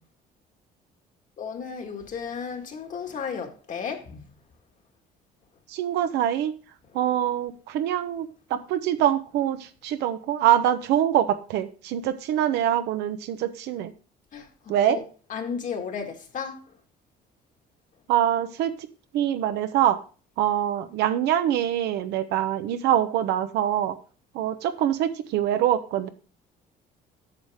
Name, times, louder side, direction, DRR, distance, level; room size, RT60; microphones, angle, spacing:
voice 1, 1.4-4.3 14.3-15.0 15.3-16.8, left 6 dB, 50° left, 1.7 m, -34 dB
voice 2, 5.7-6.5 6.9-13.9 14.7-15.0 18.1-18.7 19.1-20.0 20.4-24.0 24.3-26.1, right 11 dB, 85° right, 0.9 m, -24 dB
8.7 x 6.5 x 3.5 m
cardioid pair, 110°, 17 cm